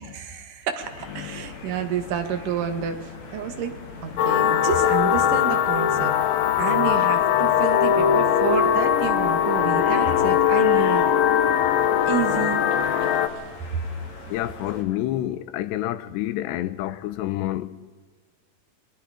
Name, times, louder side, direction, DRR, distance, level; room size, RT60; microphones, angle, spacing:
voice 1, 0.0-3.7 4.0-6.1 6.6-11.0 12.1-12.6, right 8 dB, 60° right, 3.0 m, -29 dB
sound 1, 0.8-14.8, left 3 dB, 45° left, 3.7 m, -42 dB
voice 2, 1.2-1.8 3.4-3.6 4.2-4.3 12.9-13.0 14.3-17.9, left 14 dB, 85° left, 3.0 m, -29 dB
sound 2, 4.2-13.3, left 9 dB, 65° left, 2.7 m, -20 dB
29.0 x 20.5 x 5.1 m
omnidirectional pair, 4.8 m